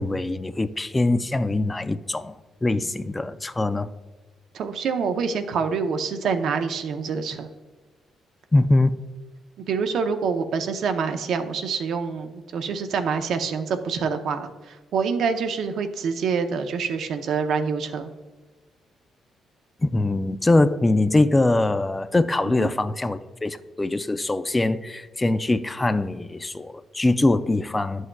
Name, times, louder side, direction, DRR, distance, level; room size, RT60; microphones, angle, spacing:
voice 1, 0.0-2.3 2.6-3.9 8.5-8.9 19.8-28.1, left 2 dB, 15° left, 12 dB, 0.4 m, -22 dB
voice 2, 4.5-7.5 9.7-18.1 22.4-22.7, right 5 dB, 70° right, 7 dB, 0.7 m, -26 dB
10.5 x 6.3 x 2.3 m, 1.3 s
cardioid pair, 90°, 0 cm